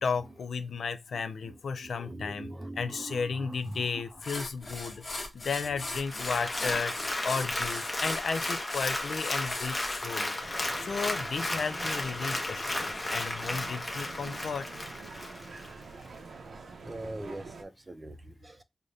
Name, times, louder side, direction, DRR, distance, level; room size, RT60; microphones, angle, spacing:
voice 1, 0.0-6.9 7.2-14.7, left 5 dB, 90° left, 0.4 m, -34 dB
voice 2, 1.4-4.0 4.9-5.2 5.9-6.2 6.6-7.1 15.4-15.5 16.8-18.6, right 1 dB, 25° right, 0.5 m, -43 dB
sound 1, 3.7-3.8 4.2-10.1, left 2 dB, 45° left, 1.1 m, -39 dB
Applause, 6.0-15.7 16.2-16.3, left 1 dB, 30° left, 0.8 m, -34 dB
sound 2, 10.4-17.6, right 4 dB, 85° right, 0.7 m, -46 dB
4.9 x 2.1 x 2.6 m
wide cardioid pair, 105°, 0 cm